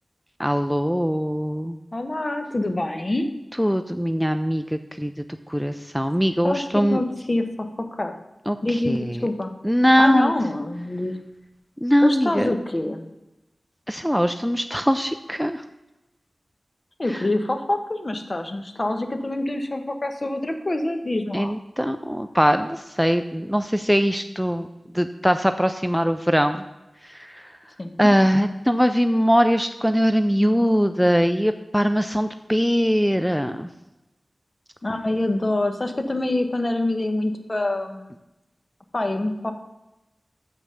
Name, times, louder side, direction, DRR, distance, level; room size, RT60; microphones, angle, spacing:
voice 1, 0.4-1.8 3.6-5.1 5.5-7.0 8.5-9.3 9.6-10.3 11.8-12.5 13.9-15.6 21.3-24.7 24.9-26.6 27.1-27.5 28.0-33.7, equal, ahead, 8 dB, 0.4 m, -21 dB
voice 2, 1.9-3.3 6.4-8.1 8.6-9.5 10.0-11.2 12.0-13.1 17.0-21.5 27.8-28.1 34.8-38.1 38.9-39.5, left 1 dB, 40° left, 7 dB, 1.0 m, -26 dB
7.3 x 5.5 x 6.4 m, 0.97 s
wide cardioid pair, 55°, 0 cm